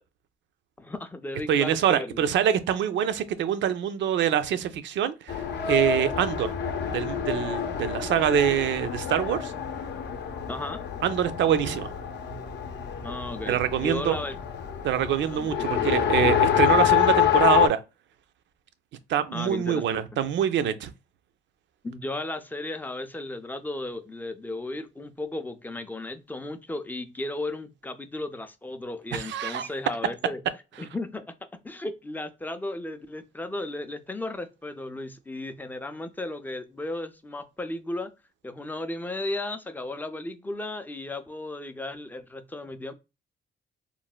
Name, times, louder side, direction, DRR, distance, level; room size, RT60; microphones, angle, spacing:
voice 1, 0.8-2.2 10.5-10.8 13.0-14.5 15.3-15.8 19.3-20.0 21.8-30.4 30.8-31.3 31.5-38.1 38.4-42.9, left 2 dB, 10° left, 0.4 m, -35 dB
voice 2, 1.5-6.5 6.9-9.5 11.0-11.9 13.5-14.2 14.8-17.8 19.1-20.9 29.1-29.7, right 9 dB, 70° right, 0.4 m, -25 dB
Race car auto racing, 5.3-17.7, left 10 dB, 60° left, 0.6 m, -27 dB
3.1 x 2.1 x 2.2 m
cardioid pair, 90°, 20 cm